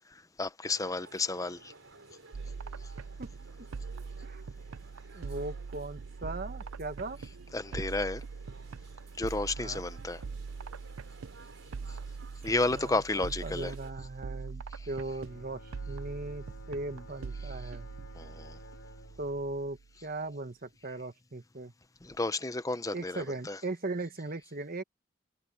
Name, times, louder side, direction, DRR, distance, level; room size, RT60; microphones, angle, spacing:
voice 1, 0.4-1.7 7.5-8.2 9.2-10.2 12.4-13.7 18.1-18.6 22.0-23.6, left 2 dB, 15° left, 0.7 m, -32 dB
sound 1, 0.6-13.9, right 3 dB, 70° right, 4.3 m, -56 dB
sound 2, 2.3-19.9, right 5 dB, 90° right, 0.5 m, -42 dB
voice 2, 5.1-7.2 9.6-9.8 12.7-17.9 19.2-21.7 22.9-24.8, right 2 dB, 45° right, 1.4 m, -38 dB
Bowed string instrument, 15.1-20.5, left 2 dB, 80° left, 2.9 m, -54 dB
head